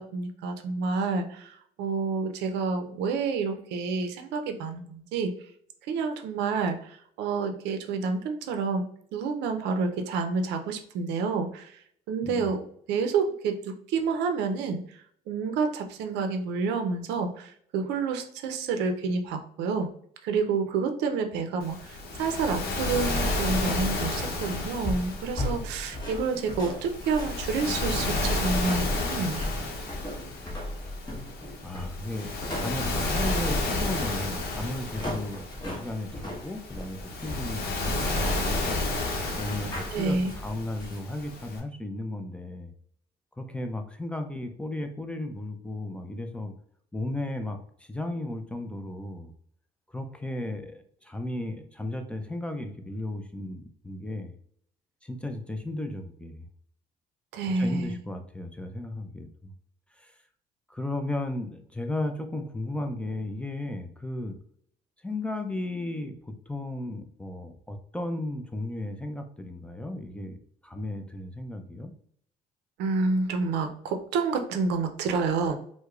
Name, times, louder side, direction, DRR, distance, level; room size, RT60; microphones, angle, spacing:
voice 1, 0.0-5.3 5.9-8.8 9.1-11.7 12.1-12.6 12.9-14.8 15.3-19.9 20.2-29.6 39.9-40.3 57.3-58.0 72.8-75.6, right 4 dB, 85° right, 6 dB, 0.5 m, -29 dB
Waves surf, 21.6-41.6, left 2 dB, 65° left, 0.8 m, -31 dB
sound 1, 24.5-41.0, left 1 dB, 25° left, 1.1 m, -38 dB
voice 2, 31.6-38.8 39.4-42.7 43.4-46.5 46.9-49.3 49.9-54.4 55.0-56.5 57.6-59.5 60.0-60.1 60.7-64.4 65.0-70.4 70.6-71.9, left 1 dB, 5° left, 6 dB, 0.4 m, -35 dB
4.5 x 2.1 x 2.3 m, 0.62 s
cardioid pair, 110°, 17 cm